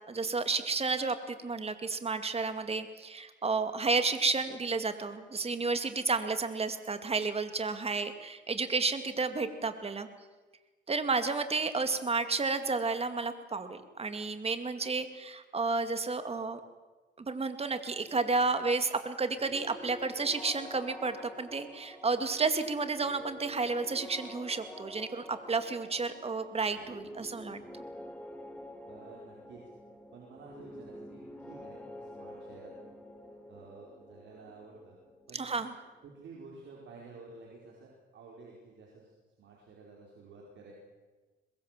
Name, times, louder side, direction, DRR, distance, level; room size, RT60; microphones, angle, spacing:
voice 1, 0.1-10.1 10.9-16.6 17.2-27.6 35.3-35.7, right 4 dB, 30° right, 9 dB, 2.4 m, -31 dB
sound 1, 19.3-36.9, left 1 dB, 5° left, 3.4 m, -48 dB
voice 2, 28.9-29.6 30.1-32.7 33.5-35.0 35.3-35.5 36.0-39.1 39.4-40.7, right 4 dB, 70° right, -2 dB, 4.7 m, -51 dB
23.0 x 21.0 x 7.6 m, 1.3 s
cardioid pair, 90°, 20 cm